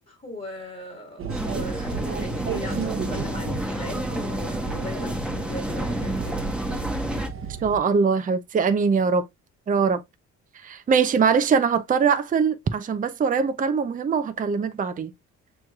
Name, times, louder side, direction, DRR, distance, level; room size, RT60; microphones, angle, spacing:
voice 1, 0.0-6.9 7.3-7.5, left 2 dB, 30° left, 1.5 m, -39 dB
sound 1, 1.2-7.8, right 6 dB, 45° right, 0.9 m, -33 dB
sound 2, 1.3-7.3, equal, 5° right, 1.1 m, -30 dB
voice 2, 7.6-9.3 9.7-10.0 10.6-15.1, right 5 dB, 30° right, 0.5 m, -22 dB
6.1 x 3.1 x 2.3 m
cardioid pair, 90°, 30 cm